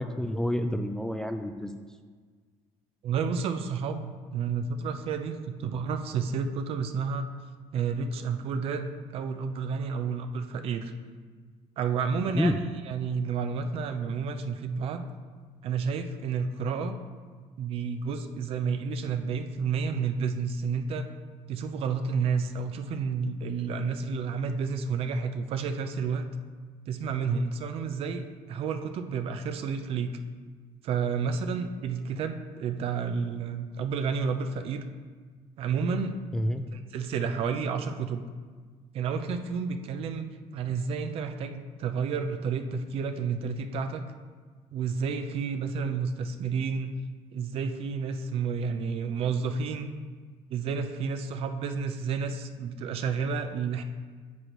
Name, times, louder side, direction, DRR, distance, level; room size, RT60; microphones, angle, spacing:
voice 1, 0.0-1.7 12.3-12.6 36.3-36.6, left 1 dB, 5° left, 6 dB, 0.3 m, -28 dB
voice 2, 3.0-7.3 7.7-10.9 11.8-12.6 12.8-15.0 15.6-17.0 17.6-21.1 21.5-26.3 26.9-30.1 30.8-34.8 35.6-36.2 36.7-38.2 38.9-44.0 44.7-46.9 47.3-49.9 50.5-53.8, right 5 dB, 55° right, 8 dB, 0.6 m, -30 dB
9.4 x 6.5 x 3.0 m, 1.5 s
cardioid pair, 140°, 12 cm